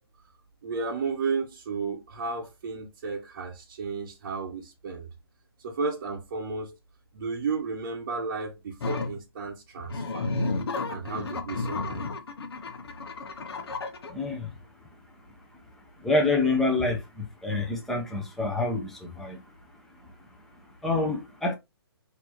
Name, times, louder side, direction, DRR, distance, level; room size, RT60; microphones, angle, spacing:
voice 1, 0.6-5.1 5.6-6.8 7.1-10.3 10.9-12.1, right 4 dB, 45° right, 0.9 m, -33 dB
sound 1, 8.8-9.1 9.8-14.1, left 3 dB, 70° left, 0.9 m, -32 dB
voice 2, 14.1-14.5 16.0-19.4 20.8-21.5, left 2 dB, ahead, 0.7 m, -27 dB
4.3 x 2.8 x 3.0 m
hypercardioid pair, 150°, 13 cm